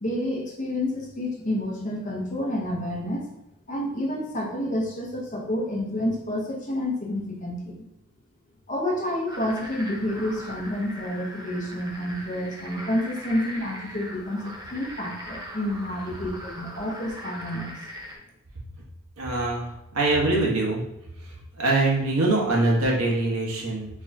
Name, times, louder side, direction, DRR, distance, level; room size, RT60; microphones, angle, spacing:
voice 1, 0.0-3.3 3.7-7.8 8.7-17.7, left 1 dB, 35° left, -2 dB, 0.9 m, -29 dB
sound 1, 9.3-18.2, equal, 15° right, 0.7 m, -40 dB
voice 2, 19.2-20.8 21.2-23.9, right 2 dB, 70° right, -2 dB, 1.2 m, -24 dB
4.6 x 3.5 x 2.7 m, 0.86 s
head